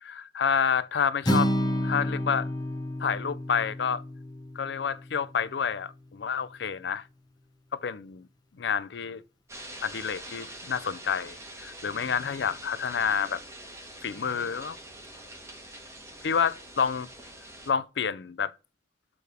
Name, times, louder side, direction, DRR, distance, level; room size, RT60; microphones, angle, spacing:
voice 1, 0.0-1.5 1.8-2.5 3.0-4.0 4.6-7.1 7.7-8.3 8.6-9.2 9.8-13.4 14.0-14.8 16.2-17.1 17.7-18.5, left 6 dB, 70° left, 0.4 m, -29 dB
Acoustic guitar, 1.2-5.5, equal, 20° left, 0.9 m, -30 dB
sound 1, 9.5-17.7, right 1 dB, 15° right, 1.2 m, -45 dB
6.9 x 3.4 x 6.1 m
head